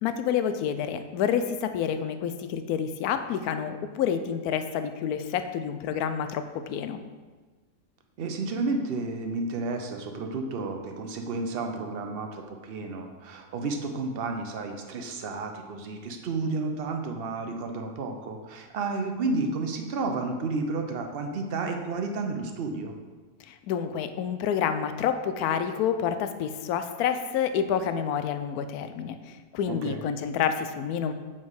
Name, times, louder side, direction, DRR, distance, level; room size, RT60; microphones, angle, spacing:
voice 1, 0.0-7.0 23.4-31.1, left 8 dB, 80° left, 9 dB, 1.1 m, -28 dB
voice 2, 8.2-22.9 29.7-30.0, right 3 dB, 50° right, 4 dB, 0.8 m, -31 dB
7.2 x 4.3 x 4.8 m, 1.4 s
omnidirectional pair, 1.6 m